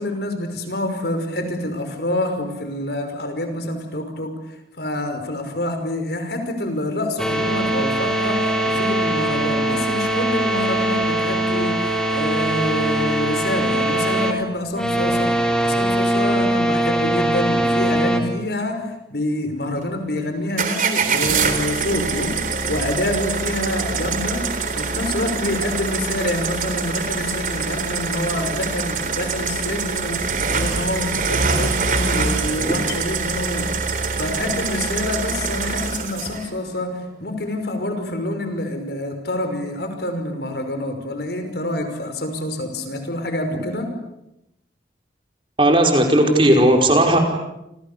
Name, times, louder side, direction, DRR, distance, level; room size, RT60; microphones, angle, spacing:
voice 1, 0.0-15.3 15.6-24.4 24.7-33.7 34.2-36.9 37.2-43.9, left 1 dB, 60° left, 6 dB, 5.6 m, -27 dB
sound 1, 7.2-14.3 14.7-18.2, right 1 dB, 5° left, 3.4 m, -21 dB
sound 2, 20.6-36.5, right 4 dB, 45° right, 3.6 m, -24 dB
voice 2, 45.6-47.2, right 1 dB, 30° right, 3 dB, 5.1 m, -15 dB
29.5 x 28.0 x 7.0 m, 0.85 s
head